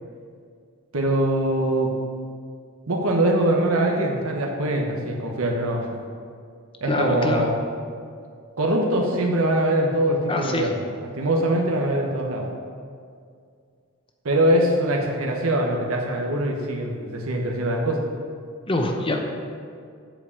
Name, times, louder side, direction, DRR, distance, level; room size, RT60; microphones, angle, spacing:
voice 1, 0.9-2.0 2.9-6.0 6.8-7.6 8.6-10.8 11.1-12.5 14.2-18.1, right 1 dB, 90° right, 1 dB, 1.0 m, -23 dB
voice 2, 6.9-7.5 10.3-10.7 18.7-19.2, left 2 dB, 25° left, 3 dB, 0.8 m, -24 dB
7.7 x 4.8 x 7.1 m, 2.3 s
head